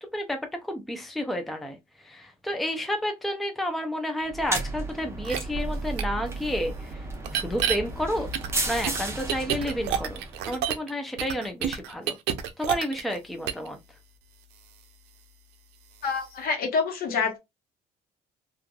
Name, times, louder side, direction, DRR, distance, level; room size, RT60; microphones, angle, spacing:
voice 1, 0.0-7.1 7.3-8.3 8.7-12.2 12.6-13.8, equal, ahead, 0.5 m, -31 dB
sound 1, 4.3-10.7, right 2 dB, 15° right, 0.8 m, -33 dB
sound 2, 5.3-5.4 6.0-6.1 7.2-7.8 8.3-10.9 11.2-13.2 13.5-13.7, right 10 dB, 90° right, 0.5 m, -28 dB
voice 2, 16.0-17.4, left 5 dB, 65° left, 1.1 m, -27 dB
3.1 x 2.5 x 2.2 m
cardioid pair, 110°, 17 cm